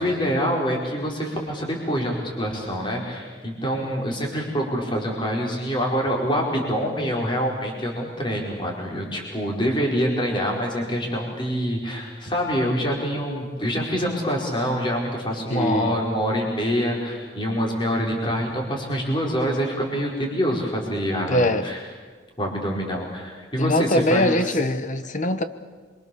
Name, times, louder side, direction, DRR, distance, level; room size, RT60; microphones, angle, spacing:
voice 1, 0.0-21.8 22.4-24.3, equal, 25° left, -1 dB, 4.7 m, -25 dB
voice 2, 15.5-16.0 21.3-21.7 23.6-25.4, left 1 dB, 45° left, 10 dB, 1.3 m, -22 dB
28.0 x 24.5 x 7.1 m, 1.5 s
head